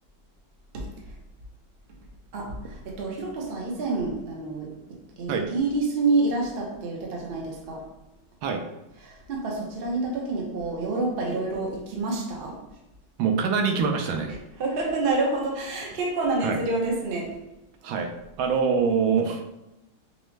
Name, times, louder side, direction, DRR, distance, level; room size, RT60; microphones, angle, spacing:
voice 1, 2.3-4.7 5.2-7.9 9.0-12.6 14.6-17.4, right 3 dB, 50° right, -2 dB, 0.6 m, -28 dB
voice 2, 13.2-14.4 16.4-16.6 17.8-18.1 18.4-19.5, right 5 dB, 80° right, 4 dB, 1.3 m, -24 dB
5.2 x 2.1 x 3.2 m, 0.94 s
omnidirectional pair, 2.2 m